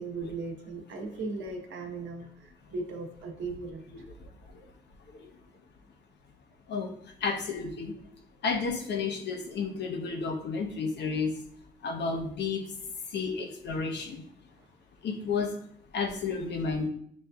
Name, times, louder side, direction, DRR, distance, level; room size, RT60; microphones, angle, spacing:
voice 1, 0.0-2.3 2.7-3.8, right 3 dB, 70° right, 0.9 m, -37 dB
voice 2, 7.2-7.9 8.4-11.3 11.8-12.7 13.1-14.2 15.0-15.6 15.9-16.9, left 4 dB, 60° left, 0.7 m, -31 dB
7.0 x 2.6 x 2.3 m
cardioid pair, 90°, 20 cm